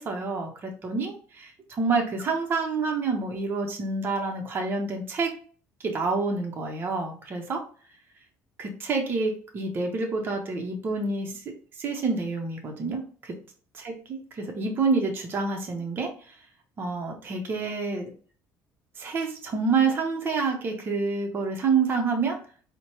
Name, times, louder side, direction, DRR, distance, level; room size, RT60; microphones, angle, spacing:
voice 1, 0.0-5.3 5.8-7.6 8.6-11.4 11.8-13.3 13.8-13.9 14.3-16.3 16.8-18.1 19.0-22.4, right 4 dB, 35° right, 2 dB, 0.7 m, -28 dB
4.3 x 2.1 x 2.9 m, 0.43 s
cardioid pair, 120°, 6 cm